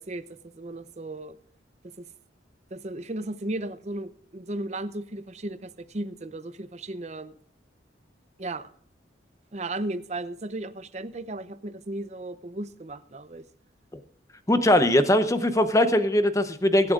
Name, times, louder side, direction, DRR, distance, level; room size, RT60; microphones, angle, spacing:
voice 1, 0.0-1.4 2.0-2.1 2.7-7.3 8.4-8.7 9.5-13.4, right 2 dB, 35° right, 12 dB, 0.7 m, -35 dB
voice 2, 14.5-16.9, left 1 dB, 15° left, 10 dB, 0.8 m, -21 dB
23.5 x 8.6 x 2.5 m, 0.65 s
head